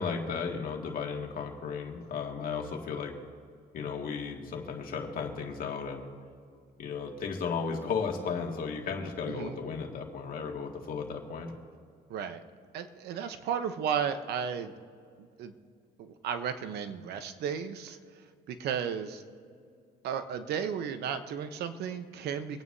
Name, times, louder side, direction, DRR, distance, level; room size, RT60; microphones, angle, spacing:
voice 1, 0.0-3.1 3.7-6.1 6.8-11.5, left 5 dB, 60° left, 1 dB, 2.1 m, -35 dB
voice 2, 9.3-9.6 12.1-12.4 12.7-14.7 15.4-15.5 16.0-18.0 18.5-19.2 20.0-22.6, right 7 dB, 75° right, 9 dB, 1.0 m, -34 dB
26.5 x 9.3 x 2.8 m, 2.3 s
cardioid pair, 110°, 17 cm